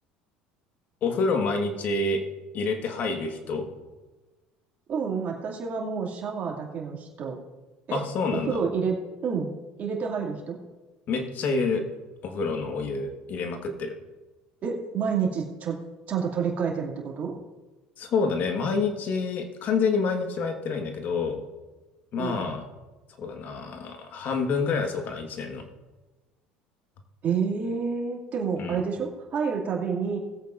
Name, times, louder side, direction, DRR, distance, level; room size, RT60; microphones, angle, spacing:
voice 1, 1.0-2.2 2.5-3.7 7.9-8.6 11.1-11.8 12.2-13.9 18.0-21.4 22.1-22.6 23.2-25.7 28.6-28.8, left 4 dB, 55° left, 4 dB, 1.6 m, -28 dB
voice 2, 4.9-7.4 7.9-8.0 8.3-9.5 9.8-10.6 14.6-15.8 16.1-17.4 22.2-22.5 27.2-30.2, right 6 dB, 45° right, -1 dB, 2.5 m, -29 dB
19.5 x 8.3 x 2.6 m, 1.2 s
supercardioid pair, 95°, 4 cm